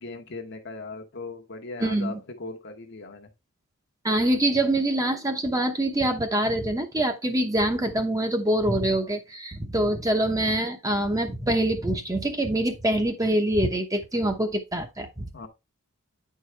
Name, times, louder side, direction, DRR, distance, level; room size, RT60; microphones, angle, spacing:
voice 1, 0.0-3.3 15.3-15.5, left 3 dB, 55° left, 1.0 m, -38 dB
voice 2, 1.8-2.2 4.0-15.3, right 1 dB, 15° right, 0.9 m, -25 dB
9.3 x 4.7 x 3.3 m
head